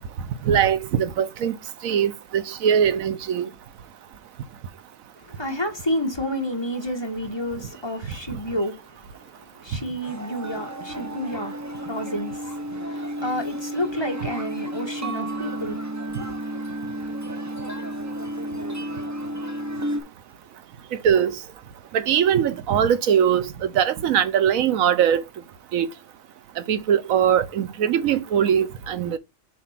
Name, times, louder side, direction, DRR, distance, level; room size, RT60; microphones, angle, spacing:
voice 1, 0.5-1.5 1.8-3.5 21.0-21.3 21.9-23.5 23.7-25.2 25.7-25.9 26.7-29.2, right 9 dB, 85° right, 1.2 m, -21 dB
voice 2, 5.2-15.8 16.2-16.6, equal, 20° left, 1.6 m, -30 dB
sound 1, 10.0-20.0, right 1 dB, 15° right, 0.7 m, -32 dB
7.5 x 2.7 x 5.8 m
omnidirectional pair, 1.4 m